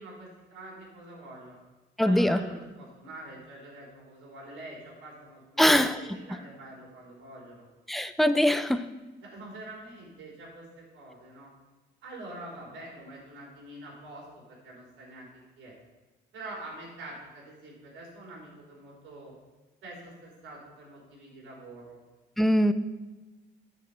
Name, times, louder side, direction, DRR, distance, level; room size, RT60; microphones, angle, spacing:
voice 1, 0.0-1.6 2.0-7.7 9.2-11.5 12.0-15.3 15.6-15.7 16.3-19.3 19.8-22.0, right 2 dB, 75° right, -3 dB, 3.6 m, -45 dB
voice 2, 2.0-2.4 5.6-6.0 7.9-8.9 22.4-22.7, equal, ahead, 10 dB, 0.5 m, -22 dB
9.5 x 4.7 x 6.7 m, 1.2 s
cardioid pair, 90°, 20 cm